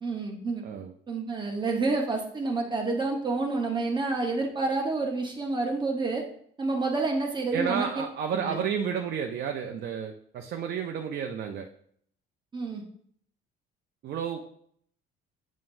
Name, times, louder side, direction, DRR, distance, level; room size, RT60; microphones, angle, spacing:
voice 1, 0.0-0.7 1.1-6.3 6.6-7.9 8.3-8.6 12.5-12.8, right 3 dB, 20° right, 1 dB, 0.9 m, -29 dB
voice 2, 7.5-11.7 14.0-14.6, right 7 dB, 50° right, 3 dB, 0.6 m, -31 dB
7.2 x 5.8 x 2.6 m, 0.64 s
cardioid pair, 135°, 21 cm